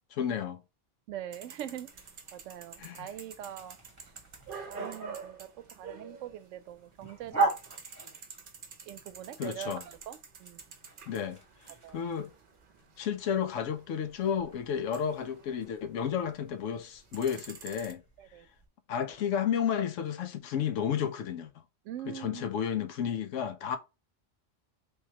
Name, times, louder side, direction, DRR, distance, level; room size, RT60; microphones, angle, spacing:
voice 1, 0.1-0.6 2.8-3.1 4.8-4.9 9.4-9.8 11.1-11.4 11.9-12.3 13.0-18.0 18.9-21.5 22.1-23.8, left 8 dB, 85° left, 1.0 m, -32 dB
voice 2, 1.1-1.9 2.3-3.8 4.7-7.5 8.9-10.6 11.8-12.1 18.2-18.5 21.8-22.4, right 10 dB, 85° right, 0.9 m, -42 dB
sound 1, 1.3-6.8 7.0-16.4 16.8-17.9, right 5 dB, 50° right, 0.8 m, -48 dB
sound 2, 1.9-18.7, right 3 dB, 15° right, 1.1 m, -41 dB
3.5 x 3.0 x 2.9 m
omnidirectional pair, 1.3 m